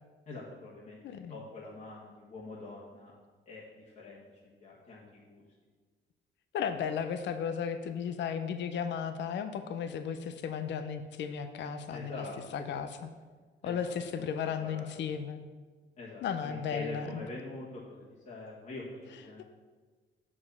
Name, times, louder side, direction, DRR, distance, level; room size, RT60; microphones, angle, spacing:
voice 1, 0.3-3.1 3.5-4.2 4.6-5.4 11.9-12.3 12.7-12.9 13.6-13.9 14.6-14.9 16.0-19.4, left 2 dB, 40° left, -7 dB, 1.5 m, -44 dB
voice 2, 1.0-1.4 6.5-12.2 12.5-13.1 13.6-15.4 16.2-17.2 19.4-19.5, left 7 dB, 65° left, 9 dB, 0.6 m, -35 dB
6.5 x 4.9 x 5.6 m, 1.4 s
cardioid pair, 90°, 20 cm